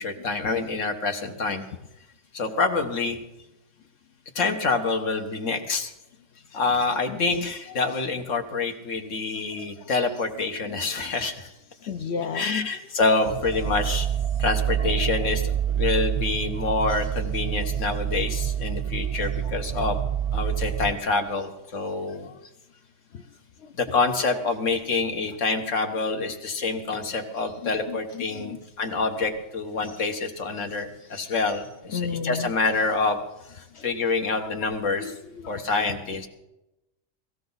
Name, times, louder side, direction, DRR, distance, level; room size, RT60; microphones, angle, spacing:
voice 1, 0.0-1.6 2.3-3.2 4.4-5.9 6.5-11.5 12.3-14.1 14.4-20.0 20.3-22.3 23.8-33.2 33.5-35.1 35.5-36.3, left 3 dB, 80° left, 5 dB, 1.7 m, -27 dB
voice 2, 7.1-7.4 9.6-9.9 10.6-10.8 11.9-12.7 20.6-20.8 22.2-22.4 23.1-23.2 23.6-23.7 27.6-28.6 31.9-32.5 33.7-33.8 34.4-34.7 35.0-35.6, left 6 dB, 65° left, 7 dB, 0.9 m, -34 dB
sound 1, 13.3-20.9, right 9 dB, 55° right, 0.4 m, -27 dB
17.5 x 16.0 x 4.0 m, 0.93 s
omnidirectional pair, 1.3 m